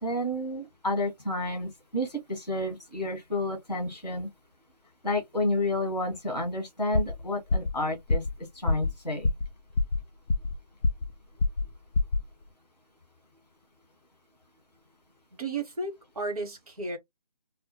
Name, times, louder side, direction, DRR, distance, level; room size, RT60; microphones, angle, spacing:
voice 1, 0.0-4.3 5.0-8.2 8.5-9.3, left 1 dB, ahead, 0.5 m, -30 dB
sound 1, 6.9-7.2 7.5-7.8 8.1-8.4 8.7-8.9 9.2-9.5 9.8-10.6 10.8-11.1 11.4-11.7 11.9-12.2, left 3 dB, 80° left, 0.5 m, -25 dB
voice 2, 15.4-17.0, right 3 dB, 60° right, 1.0 m, -33 dB
2.1 x 2.1 x 2.6 m
figure-of-eight pair, 165°, 21 cm